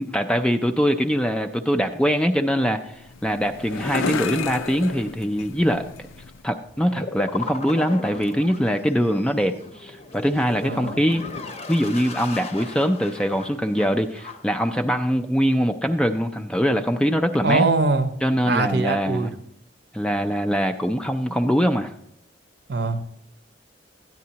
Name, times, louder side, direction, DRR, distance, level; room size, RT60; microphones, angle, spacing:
voice 1, 0.0-5.9 6.4-11.2 11.7-17.6 18.2-19.3 19.9-21.9, equal, 5° left, 6 dB, 0.3 m, -23 dB
sound 1, 2.8-6.4, left 5 dB, 90° left, 0.5 m, -32 dB
sound 2, 6.1-6.2 6.5-14.4 14.8-14.9, left 3 dB, 35° left, 0.7 m, -36 dB
voice 2, 10.6-11.0 17.4-18.1 18.5-19.3 22.7-23.0, right 3 dB, 55° right, 9 dB, 0.7 m, -22 dB
13.0 x 9.3 x 2.8 m, 0.73 s
head